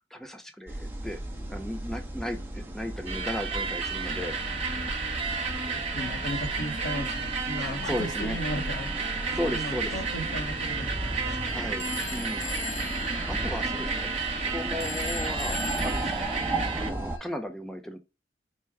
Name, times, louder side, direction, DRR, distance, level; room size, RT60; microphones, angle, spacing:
voice 1, 0.1-1.2 1.5-4.4 7.6-8.4 9.0-9.9 11.2-12.5 12.9-15.6 15.8-16.2 16.8-18.0, left 1 dB, ahead, 0.5 m, -36 dB
sound 1, 0.7-17.2, right 1 dB, 15° right, 0.9 m, -36 dB
sound 2, 3.1-16.9, right 4 dB, 35° right, 1.1 m, -32 dB
voice 2, 5.4-11.6, equal, 90° left, 1.3 m, -36 dB
Telephone, 11.8-17.4, left 9 dB, 75° left, 0.4 m, -41 dB
4.5 x 2.2 x 4.6 m
head